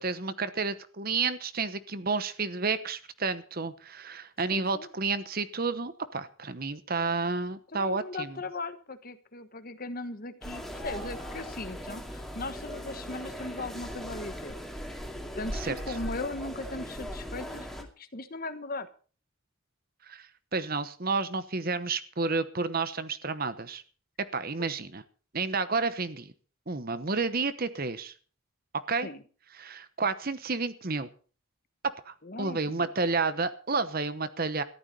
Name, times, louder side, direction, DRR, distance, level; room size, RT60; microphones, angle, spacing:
voice 1, 0.0-8.4 15.6-15.7 20.1-20.3 20.5-23.8 24.3-25.0 25.3-26.3 26.7-28.1 28.9-29.1 29.6-31.1 32.1-34.6, right 4 dB, 45° right, 12 dB, 1.0 m, -30 dB
voice 2, 4.5-4.9 7.7-14.5 15.4-18.9 24.6-24.7 29.0-29.2 32.2-32.9, left 2 dB, 40° left, 10 dB, 1.3 m, -38 dB
sound 1, 10.4-17.8, equal, ahead, 2.2 m, -39 dB
14.0 x 12.5 x 5.4 m, 0.40 s
head